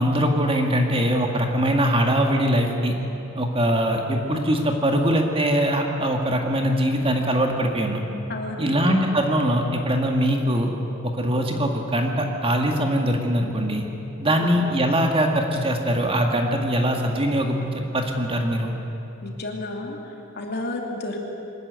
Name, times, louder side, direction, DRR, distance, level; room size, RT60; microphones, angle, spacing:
voice 1, 0.0-2.9 3.4-8.0 8.6-10.7 11.0-13.9 14.2-18.7, equal, 25° right, 3 dB, 1.8 m, -22 dB
voice 2, 8.3-8.7 14.3-14.5 19.2-21.2, left 2 dB, 50° left, 1 dB, 2.7 m, -32 dB
23.5 x 13.5 x 9.4 m, 2.9 s
head